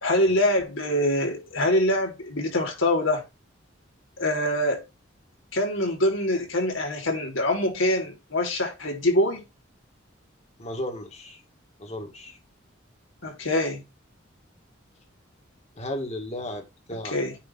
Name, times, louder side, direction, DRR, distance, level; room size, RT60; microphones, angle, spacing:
voice 1, 0.0-3.2 4.2-4.8 5.5-9.4 13.2-13.8 17.1-17.4, left 1 dB, 85° left, 3.5 m, -24 dB
voice 2, 10.6-11.4 11.8-12.4 15.8-17.2, left 1 dB, 35° left, 2.0 m, -35 dB
9.2 x 3.3 x 6.0 m
head